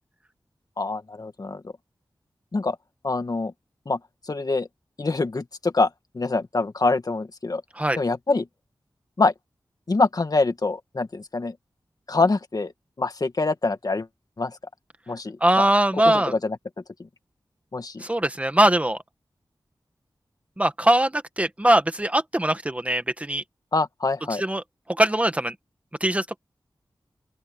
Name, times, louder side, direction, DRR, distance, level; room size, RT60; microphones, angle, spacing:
voice 1, 0.8-1.6 2.5-2.8 3.0-3.5 3.9-4.0 4.3-4.7 5.0-7.6 8.0-8.5 9.2-9.3 9.9-11.6 12.1-12.7 13.0-14.1 14.4-14.6 15.1-15.7 15.9-16.6 17.0-17.1 17.7-18.0 23.7-24.4, left 3 dB, 50° left, 1.7 m, -25 dB
voice 2, 15.4-16.3 18.0-19.0 20.6-23.4 24.4-24.6 24.9-25.6 26.0-26.4, right 1 dB, 15° right, 1.7 m, -21 dB
open air
wide cardioid pair, 85°, 8 cm